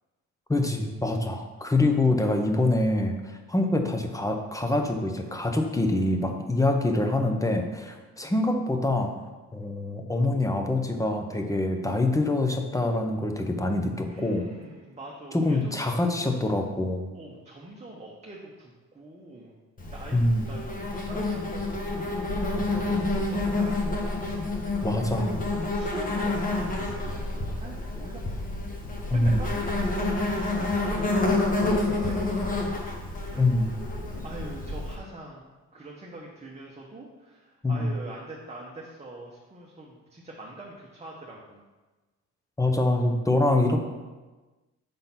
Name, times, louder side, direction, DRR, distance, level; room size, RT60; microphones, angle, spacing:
voice 1, 0.5-9.1 9.5-14.5 15.3-17.1 20.1-20.4 24.8-25.3 29.1-29.4 33.4-33.7 37.6-37.9 42.6-43.8, left 2 dB, 10° left, 4 dB, 0.8 m, -25 dB
voice 2, 14.1-16.0 17.1-24.2 25.6-28.4 29.1-33.6 34.2-35.4 35.7-41.6, right 1 dB, 20° right, -3 dB, 1.0 m, -44 dB
Insect, 19.8-34.9, left 2 dB, 25° left, 1.2 m, -28 dB
5.2 x 3.9 x 5.8 m, 1.2 s
cardioid pair, 90°, 30 cm